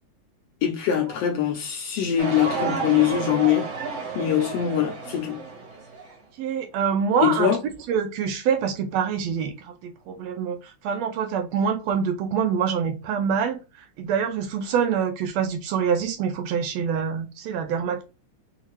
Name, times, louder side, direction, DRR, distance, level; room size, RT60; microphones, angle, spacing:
voice 1, 0.6-3.7 4.1-5.4 7.2-7.6, left 10 dB, 75° left, 1.5 m, -23 dB
sound 1, 2.2-6.1, right 4 dB, 55° right, 3.1 m, -31 dB
voice 2, 6.4-7.6 7.9-10.6 10.8-13.6 14.0-18.0, right 7 dB, 80° right, 1.7 m, -25 dB
5.7 x 2.7 x 3.0 m
omnidirectional pair, 3.3 m